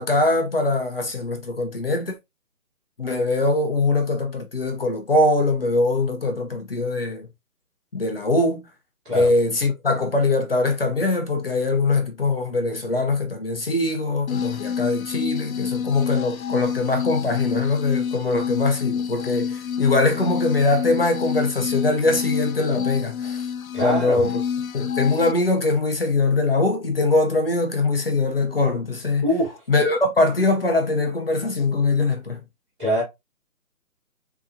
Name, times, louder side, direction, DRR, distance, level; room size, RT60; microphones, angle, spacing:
voice 1, 0.0-2.1 3.0-7.3 7.9-8.7 9.1-23.4 23.8-24.4 24.7-29.2 29.7-32.4, left 2 dB, 40° left, 0.9 m, -22 dB
sound 1, 14.3-25.3, left 7 dB, 65° left, 0.5 m, -28 dB
voice 2, 23.7-24.2 29.2-29.6 32.8-33.0, equal, 5° right, 1.5 m, -23 dB
6.0 x 3.0 x 2.6 m
hypercardioid pair, 175°, 45 cm